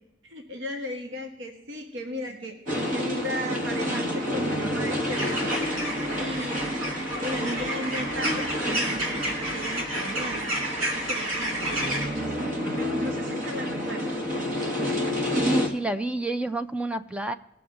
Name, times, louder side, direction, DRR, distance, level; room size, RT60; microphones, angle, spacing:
voice 1, 0.2-2.5 2.9-5.4 6.1-6.8 7.2-10.5 10.9-14.2, equal, 65° right, 3 dB, 1.4 m, -36 dB
sound 1, 2.7-15.7, equal, 40° right, 1.5 m, -29 dB
sound 2, 5.1-12.1, right 1 dB, 80° right, 2.9 m, -31 dB
voice 2, 15.3-17.3, right 2 dB, 5° right, 10 dB, 0.3 m, -29 dB
20.0 x 6.9 x 3.7 m, 0.91 s
head